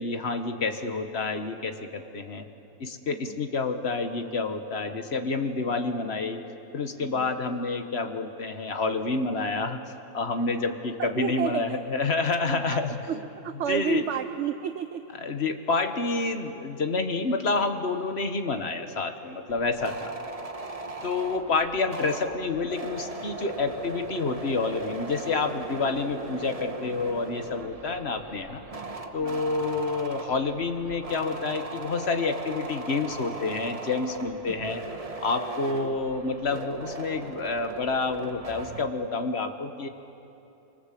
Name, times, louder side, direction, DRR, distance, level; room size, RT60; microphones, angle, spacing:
voice 1, 0.0-2.5 2.8-6.4 6.7-9.8 10.1-12.9 13.7-14.0 15.2-20.1 21.0-28.6 29.1-34.8 35.2-39.9, left 3 dB, 40° left, 7 dB, 1.6 m, -28 dB
voice 2, 7.0-7.3 10.4-11.8 12.4-15.0 20.0-20.1 21.0-21.1 27.6-27.7 28.1-28.2 29.2-29.7, right 9 dB, 55° right, 9 dB, 0.9 m, -33 dB
sound 1, 19.5-38.8, right 2 dB, 25° right, 1.2 m, -38 dB
26.5 x 25.0 x 7.6 m, 2.9 s
omnidirectional pair, 1.7 m